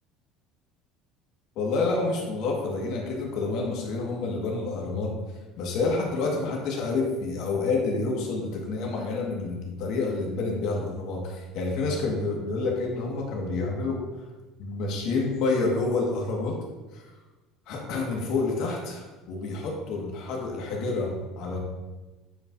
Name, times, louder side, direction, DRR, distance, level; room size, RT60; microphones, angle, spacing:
voice 1, 1.5-5.1 5.6-14.3 14.6-16.6 16.9-17.0 17.7-21.6, left 3 dB, 65° left, -1 dB, 1.7 m, -28 dB
8.7 x 4.9 x 2.7 m, 1.2 s
supercardioid pair, 100°, 0 cm